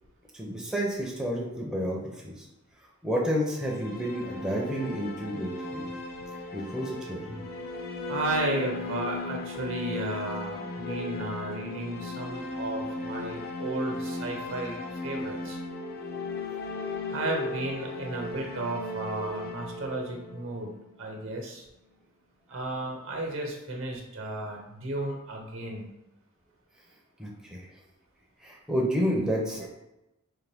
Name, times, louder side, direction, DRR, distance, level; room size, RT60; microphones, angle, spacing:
voice 1, 0.3-2.5 3.0-5.8 6.5-7.4 27.2-27.6 28.4-29.7, equal, 5° right, -3 dB, 0.5 m, -30 dB
sound 1, 3.4-21.4, left 2 dB, 45° left, 0.5 m, -36 dB
voice 2, 8.1-14.8 15.0-15.6 17.1-21.6 22.5-25.9, right 2 dB, 65° right, 1 dB, 0.9 m, -34 dB
3.8 x 2.6 x 3.4 m, 0.94 s
head